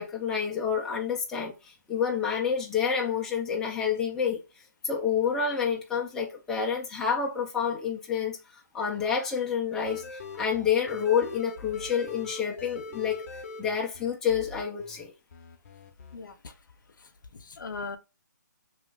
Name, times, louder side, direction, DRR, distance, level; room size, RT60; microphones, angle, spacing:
voice 1, 0.0-4.4 4.8-13.2 13.6-15.1, left 7 dB, 5° left, 0.4 m, -28 dB
sound 1, 9.7-15.1 15.3-16.2, left 3 dB, 45° left, 0.6 m, -42 dB
voice 2, 16.1-16.5 17.3-18.0, left 4 dB, 80° left, 0.6 m, -38 dB
2.9 x 2.4 x 3.6 m
hypercardioid pair, 155°, 10 cm